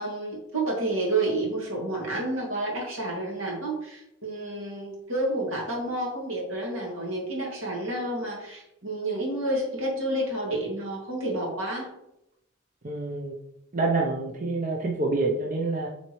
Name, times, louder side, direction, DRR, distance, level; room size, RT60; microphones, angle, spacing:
voice 1, 0.0-11.9, right 2 dB, 75° right, -2 dB, 2.2 m, -30 dB
voice 2, 12.8-13.3 13.7-15.9, right 3 dB, 40° right, -1 dB, 0.7 m, -27 dB
7.6 x 4.2 x 3.1 m, 0.82 s
head